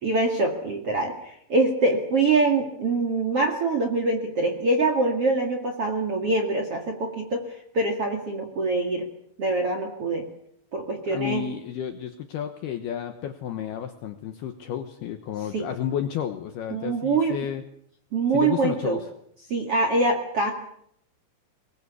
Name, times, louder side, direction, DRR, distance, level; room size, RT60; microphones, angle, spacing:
voice 1, 0.0-7.4 7.7-9.1 9.4-10.3 10.7-11.4 15.5-15.7 16.7-17.4 18.1-19.0 19.5-20.5, right 3 dB, 45° right, 3 dB, 2.0 m, -24 dB
voice 2, 11.1-17.6 18.3-19.0, left 9 dB, 70° left, 8 dB, 2.5 m, -31 dB
23.5 x 21.0 x 8.3 m, 0.69 s
omnidirectional pair, 5.9 m